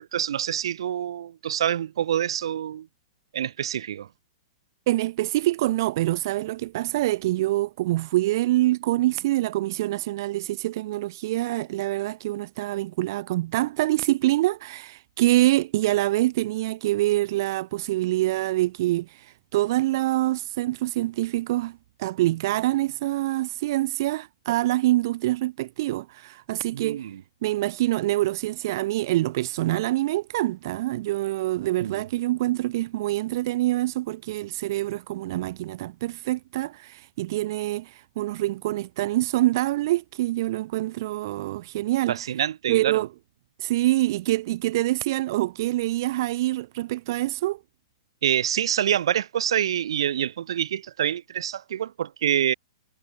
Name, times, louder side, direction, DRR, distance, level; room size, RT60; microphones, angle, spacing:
voice 1, 0.0-2.9 3.3-4.1 26.7-27.2 31.8-32.0 42.1-43.1 48.2-52.5, right 10 dB, 65° right, 2.5 m, -26 dB
voice 2, 4.9-27.1 27.4-42.3 42.7-43.1 43.6-47.6, right 16 dB, 40° right, 1.1 m, -25 dB
hypercardioid pair, 170°, 3 cm